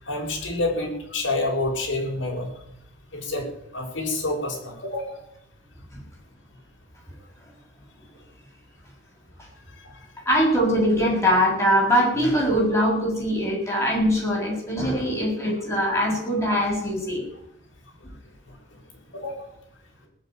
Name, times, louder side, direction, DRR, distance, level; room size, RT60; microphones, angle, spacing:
voice 1, 0.0-2.5 3.1-3.5 3.7-5.2 9.8-10.1 16.1-16.2 19.1-19.5, left 2 dB, 75° left, 0 dB, 6.0 m, -28 dB
voice 2, 10.3-17.2, equal, 15° left, -3 dB, 7.1 m, -22 dB
19.0 x 8.2 x 9.3 m, 0.79 s
head